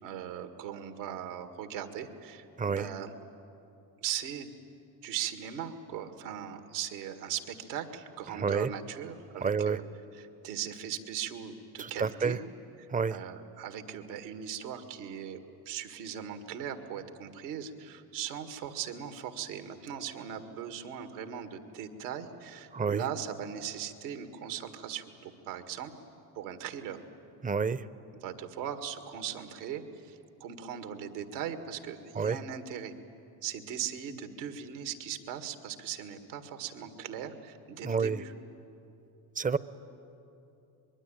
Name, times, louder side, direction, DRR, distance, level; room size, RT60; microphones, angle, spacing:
voice 1, 0.0-3.1 4.0-4.5 5.0-9.8 10.2-12.4 13.1-25.9 26.4-27.0 28.2-32.9 33.4-38.3, right 9 dB, 75° right, 8 dB, 2.0 m, -39 dB
voice 2, 2.6-2.9 8.3-8.7 9.4-9.8 11.8-12.4 12.9-13.2 22.7-23.0 27.4-27.9 32.1-32.4 37.8-38.2 39.4-39.6, right 5 dB, 15° right, 17 dB, 0.8 m, -29 dB
25.0 x 21.5 x 9.0 m, 2.9 s
hypercardioid pair, 70°, 49 cm